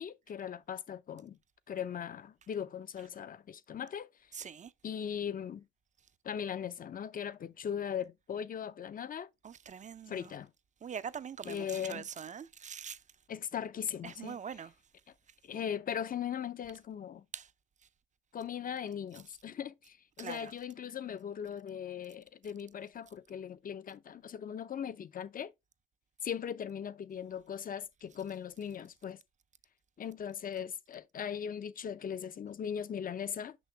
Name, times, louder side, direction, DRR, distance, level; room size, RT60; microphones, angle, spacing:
voice 1, 0.0-1.4 1.7-4.1 4.8-5.7 6.2-9.3 10.1-10.5 11.4-12.1 13.3-14.4 15.4-17.2 18.3-25.5 26.2-29.2 30.0-33.6, left 8 dB, 45° left, 0.7 m, -39 dB
voice 2, 4.3-4.7 9.4-10.3 10.8-13.0 14.0-14.7 17.3-17.5 20.2-20.5, right 7 dB, 40° right, 0.6 m, -43 dB
6.3 x 5.7 x 3.3 m
cardioid pair, 90°, 20 cm